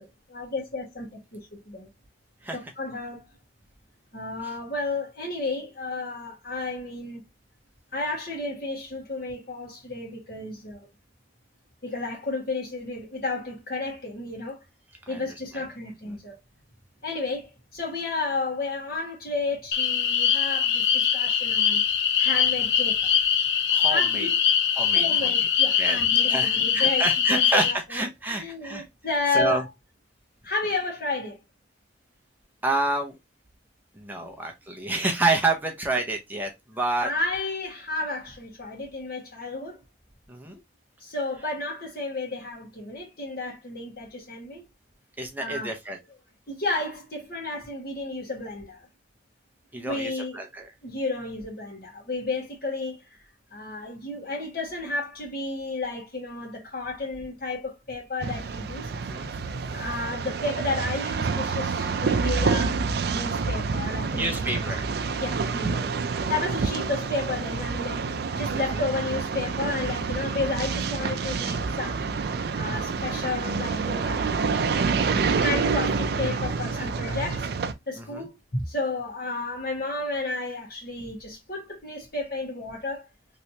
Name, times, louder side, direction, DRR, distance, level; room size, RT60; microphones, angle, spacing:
voice 1, 0.0-1.9 2.5-3.3 4.1-7.2 7.9-10.9 11.8-14.6 15.1-16.4 17.0-21.8 22.2-23.2 23.9-24.3 24.9-27.0 27.3-28.0 28.3-29.7 30.4-31.4 34.2-34.3 37.0-39.8 41.0-44.6 45.4-45.7 46.5-48.8 49.7-50.4 50.8-53.2 53.5-58.9 59.7-62.8 63.1-64.7 65.1-65.9 66.3-68.0 68.4-72.1 72.6-74.9 75.3-77.5 77.9-83.1, left 3 dB, 55° left, 1.6 m, -32 dB
sound 1, 19.7-27.7, left 8 dB, 75° left, 0.5 m, -22 dB
voice 2, 23.7-24.3 24.8-25.3 25.8-26.0 26.3-28.8 29.3-29.6 32.6-33.2 33.9-37.1 40.3-40.6 45.2-46.0 49.7-50.7 59.0-59.3 64.1-64.9 65.5-65.6 76.8-77.2 78.0-78.3, right 2 dB, 10° right, 0.5 m, -28 dB
sound 2, 58.2-77.7, right 4 dB, 60° right, 0.4 m, -28 dB
3.2 x 2.9 x 2.7 m
head